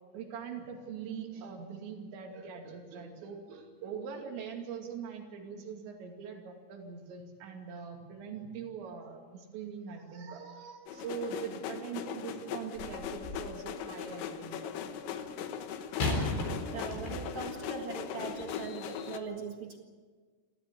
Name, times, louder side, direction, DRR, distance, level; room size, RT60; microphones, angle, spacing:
voice 1, 0.1-14.7, right 6 dB, 75° right, 2 dB, 4.8 m, -42 dB
sound 1, 10.9-19.2, left 8 dB, 80° left, 3.6 m, -40 dB
sound 2, 12.7-13.6 16.0-17.5 18.3-18.4, left 2 dB, 65° left, 6.0 m, -35 dB
voice 2, 16.7-19.8, right 4 dB, 50° right, 2 dB, 1.5 m, -40 dB
29.5 x 13.5 x 8.4 m, 1.5 s
omnidirectional pair, 5.2 m